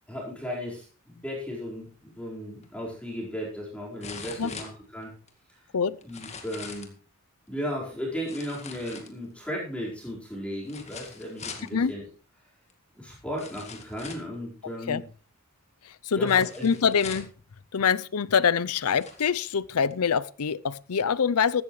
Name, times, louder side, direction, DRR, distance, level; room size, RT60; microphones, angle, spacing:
voice 1, 0.1-5.2 5.5-5.6 6.0-6.9 7.5-12.0 12.9-15.1 16.1-16.7, equal, 5° left, 4.5 m, -35 dB
sound 1, 2.6-2.7 4.0-5.3 6.0-7.0 8.2-9.4 10.6-11.7 12.7-12.8 13.4-14.3 16.3-17.4 18.2-18.3 18.7-19.3 19.9-20.0, left 5 dB, 30° left, 1.9 m, -42 dB
voice 2, 15.8-17.3 17.7-21.6, left 6 dB, 90° left, 0.6 m, -25 dB
15.0 x 12.5 x 3.2 m
head